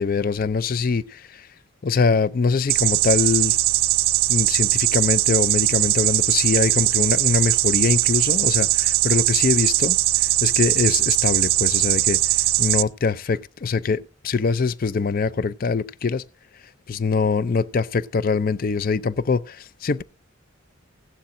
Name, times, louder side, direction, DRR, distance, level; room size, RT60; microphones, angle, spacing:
voice 1, 0.0-1.5 1.8-3.6 4.3-16.2 16.9-20.0, left 5 dB, 45° left, 0.4 m, -23 dB
sound 1, 2.7-12.8, right 16 dB, 90° right, 0.5 m, -20 dB
16.0 x 11.5 x 2.6 m
head